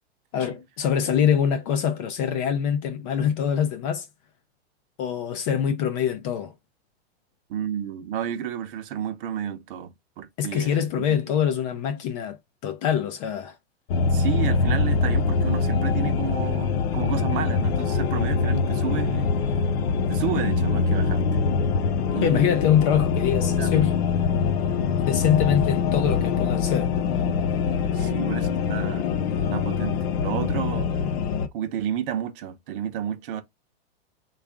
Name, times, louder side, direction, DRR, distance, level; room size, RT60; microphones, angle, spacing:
voice 1, 0.3-4.1 5.0-6.5 10.4-12.4 12.6-13.6 22.2-23.9 25.1-27.2 28.0-28.1, left 8 dB, 30° left, 0.4 m, -24 dB
voice 2, 7.5-11.2 14.1-19.4 20.1-21.2 22.1-22.7 23.6-23.8 27.9-29.1 29.5-30.9 31.5-33.4, right 9 dB, 55° right, 0.7 m, -31 dB
sound 1, 13.9-31.5, left 5 dB, 70° left, 0.6 m, -24 dB
3.5 x 2.4 x 3.5 m
hypercardioid pair, 145°, 33 cm